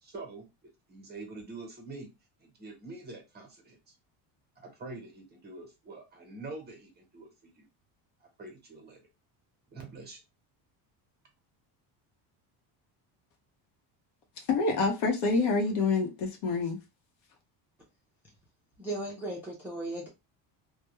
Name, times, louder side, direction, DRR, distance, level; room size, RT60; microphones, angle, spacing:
voice 1, 0.0-0.5 0.9-2.1 2.4-3.8 4.6-7.7 8.2-9.0 9.7-10.2, right 3 dB, 20° right, 0.8 m, -45 dB
voice 2, 14.4-16.8, left 4 dB, 70° left, 0.9 m, -27 dB
voice 3, 18.8-20.1, right 2 dB, 5° right, 0.4 m, -36 dB
2.3 x 2.2 x 2.9 m
cardioid pair, 145°, 48 cm